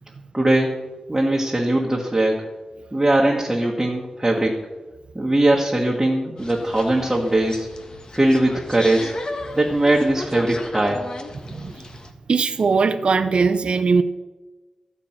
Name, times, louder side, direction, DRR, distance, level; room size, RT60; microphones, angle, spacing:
voice 1, 0.3-0.8 1.1-2.4 2.9-4.6 5.1-7.7 8.1-9.1 9.5-11.0, right 1 dB, 15° right, -2 dB, 1.5 m, -20 dB
sound 1, 6.4-12.1, left 2 dB, 40° left, 1.3 m, -35 dB
voice 2, 12.3-14.0, right 4 dB, 60° right, 7 dB, 0.6 m, -20 dB
13.5 x 6.2 x 8.8 m, 1.2 s
wide cardioid pair, 110°, 2 cm